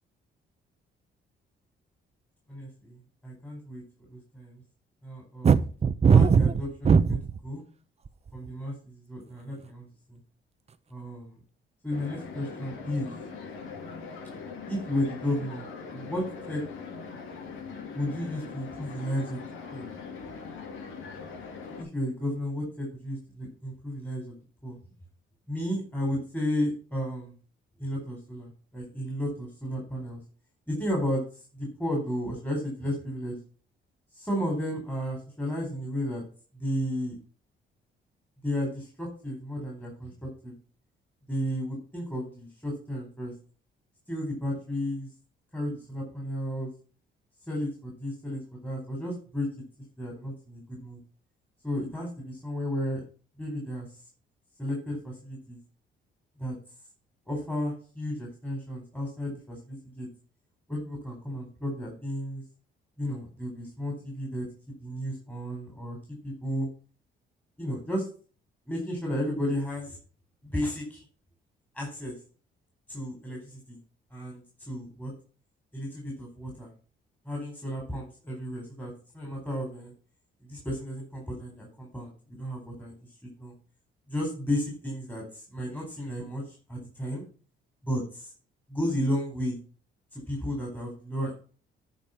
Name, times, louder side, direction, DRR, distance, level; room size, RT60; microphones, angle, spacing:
voice 1, 2.5-3.8 4.1-4.6 5.0-5.7 6.1-7.6 8.3-10.2 10.9-11.4 11.8-13.1 14.7-16.6 17.9-19.4 19.7-19.9 21.8-24.4 24.6-24.8 25.5-27.3 27.8-30.2 30.7-33.4 34.1-36.2 36.5-37.2 38.4-40.5 41.3-43.3 44.1-45.1 45.5-46.7 47.5-49.5 50.0-51.0 51.6-53.0 53.4-53.9 54.6-55.6 56.4-56.6 57.3-60.1 60.7-62.4 63.0-66.0 66.2-66.7 67.6-68.1 68.7-70.0 70.4-71.0 71.7-72.2 72.9-73.8 74.1-75.1 75.7-76.7 77.2-79.9 80.4-83.0 83.4-83.5 84.1-87.2 87.8-88.3 88.7-89.6 90.1-91.3, equal, 10° left, -1 dB, 4.4 m, -33 dB
sound 1, 5.4-7.4 8.1-8.5, right 6 dB, 30° right, 0.7 m, -19 dB
sound 2, 11.9-21.8, left 5 dB, 85° left, 2.2 m, -41 dB
10.5 x 5.2 x 5.8 m, 0.39 s
cardioid pair, 90°, 20 cm